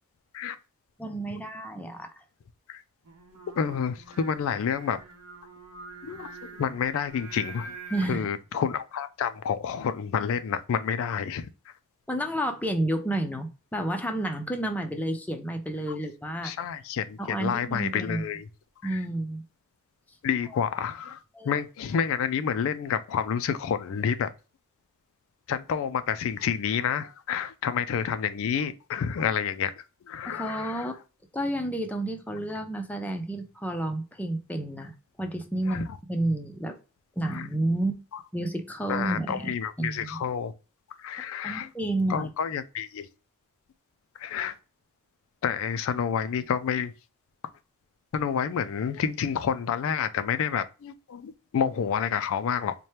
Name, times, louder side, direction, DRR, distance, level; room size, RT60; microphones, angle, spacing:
voice 1, 1.0-2.2 7.9-8.3 12.1-16.5 17.2-18.2 18.8-19.4 21.3-21.6 30.3-30.9 31.3-36.8 37.2-37.9 38.3-40.2 41.4-42.3, right 1 dB, 5° left, 0.5 m, -30 dB
Singing, 3.0-8.1, right 3 dB, 85° right, 0.8 m, -45 dB
voice 2, 3.6-5.0 6.0-7.7 8.1-11.5 15.9-16.0 16.4-18.5 18.8-19.0 20.2-24.3 25.5-29.7 30.1-30.9 35.7-36.0 37.3-37.4 38.9-40.5 41.0-41.7 42.1-43.1 44.2-44.5 45.4-46.9 48.1-52.7, left 7 dB, 65° left, 0.3 m, -29 dB
4.2 x 2.2 x 3.1 m
head